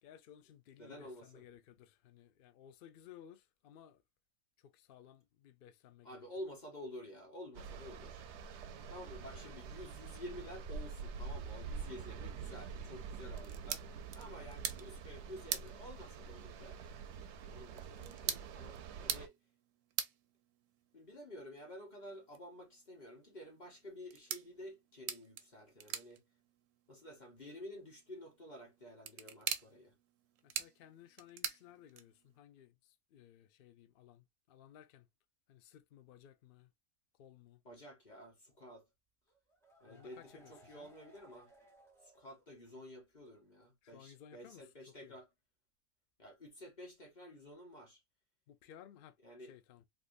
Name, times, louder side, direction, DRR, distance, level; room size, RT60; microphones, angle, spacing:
voice 1, 0.0-4.0 4.6-6.3 9.1-9.5 14.3-14.6 30.4-35.1 35.5-36.7 37.1-37.6 39.9-40.9 43.8-45.2 48.5-49.9, left 10 dB, 65° left, 0.5 m, -59 dB
voice 2, 0.8-1.4 6.0-8.2 8.9-13.8 14.2-16.9 17.5-19.3 20.9-26.2 26.9-29.9 37.6-38.9 39.8-41.5 42.0-45.3 46.2-48.0 49.2-49.5, left 1 dB, 35° left, 1.0 m, -51 dB
sound 1, 7.5-19.3, right 5 dB, 65° right, 0.7 m, -46 dB
sound 2, 13.3-32.4, right 9 dB, 90° right, 1.1 m, -46 dB
sound 3, 39.3-42.9 43.2-43.3 43.6-43.7, right 2 dB, 5° left, 0.6 m, -64 dB
3.6 x 2.4 x 2.6 m
omnidirectional pair, 1.5 m